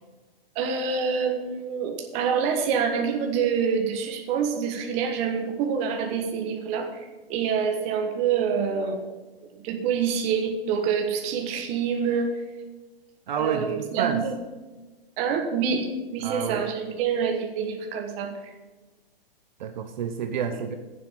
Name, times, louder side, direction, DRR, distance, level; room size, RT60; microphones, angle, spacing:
voice 1, 0.5-9.0 9.6-12.3 13.4-14.3 15.2-18.5, right 6 dB, 20° right, 4 dB, 1.3 m, -26 dB
voice 2, 13.3-14.2 16.2-16.7 19.6-20.7, right 7 dB, 50° right, 7 dB, 0.9 m, -29 dB
10.0 x 7.5 x 7.4 m, 1.2 s
hypercardioid pair, 160°, 30 cm